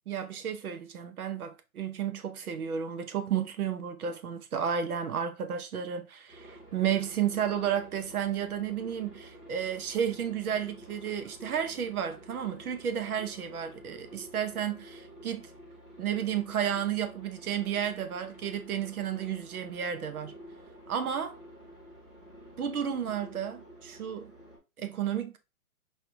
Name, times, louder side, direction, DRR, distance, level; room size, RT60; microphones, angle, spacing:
voice 1, 0.1-15.5 16.0-20.4 20.9-21.4 22.6-24.3 24.8-25.4, right 8 dB, 80° right, 0.9 m, -32 dB
Aircraft, 6.3-24.6, right 1 dB, 15° right, 1.6 m, -50 dB
4.7 x 3.2 x 3.4 m
hypercardioid pair, 175°, 44 cm